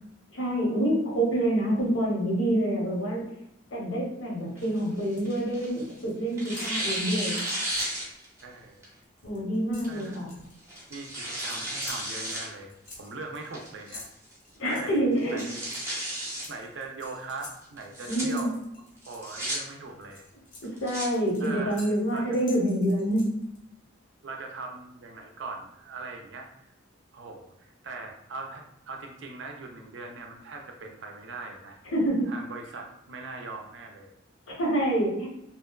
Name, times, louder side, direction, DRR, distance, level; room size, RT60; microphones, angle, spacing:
voice 1, 0.3-3.2 3.7-7.4 9.2-10.3 14.6-15.4 18.1-18.5 20.6-23.3 31.9-32.3 34.5-35.3, right 1 dB, 80° left, -2 dB, 0.8 m, -27 dB
Tearing, 4.6-5.9 6.4-8.4 8.8-8.9 9.8-10.1 10.7-12.5 12.9-13.0 13.5-13.9 14.3-14.4 14.7-14.8 15.2-16.5 17.8-18.2 19.0-19.6 20.6-21.1, right 1 dB, 15° right, 0.5 m, -33 dB
sound 1, 4.7-5.4 5.7-6.2 6.5-8.0 8.5-8.6 8.9-10.5 11.4-19.6 20.0-23.6, left 3 dB, 40° left, 0.5 m, -48 dB
voice 2, 8.4-8.9 9.9-10.3 10.9-14.1 14.8-15.6 16.5-18.6 19.1-20.3 21.4-22.4 24.2-26.5 27.1-31.8 32.3-34.1 34.8-34.9, right 3 dB, 65° right, 2 dB, 0.4 m, -41 dB
2.7 x 2.2 x 2.2 m, 0.83 s
head